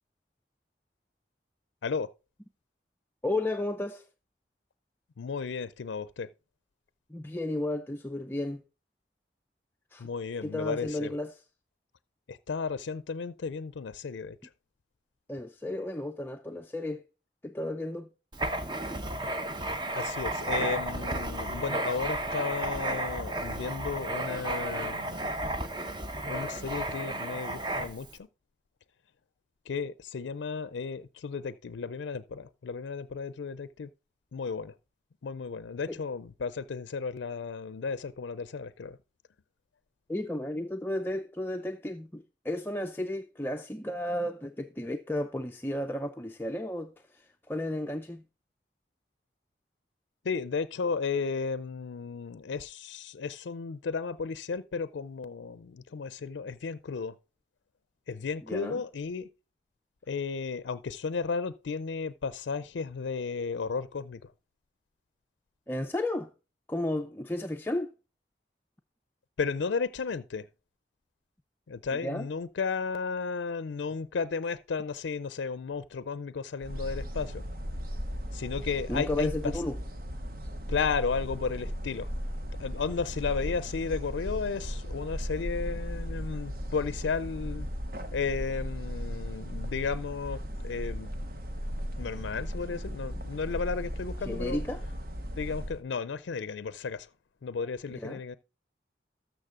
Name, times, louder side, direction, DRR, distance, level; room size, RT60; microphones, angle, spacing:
voice 1, 3.2-4.0 7.1-8.6 9.9-10.1 10.4-11.4 15.3-17.0 17.4-18.1 35.9-36.0 40.1-48.2 58.5-58.8 65.7-66.3 66.7-67.9 71.9-72.3 78.9-79.8 94.2-94.8 98.0-98.2, left 1 dB, 10° left, 0.4 m, -33 dB
voice 2, 5.2-6.3 10.0-11.1 12.3-14.5 19.9-25.3 26.2-28.3 29.7-33.9 34.3-34.8 35.2-39.0 50.2-57.1 58.1-59.3 60.1-64.2 69.4-70.5 71.7-77.4 78.3-79.5 80.7-82.1 82.6-87.7 88.1-91.3 92.0-94.6 95.4-97.1 97.4-98.4, left 5 dB, 90° left, 0.4 m, -34 dB
Writing, 18.3-28.1, right 1 dB, 25° right, 0.8 m, -33 dB
sound 1, 76.6-95.8, equal, 50° right, 1.1 m, -36 dB
13.0 x 6.3 x 3.7 m
head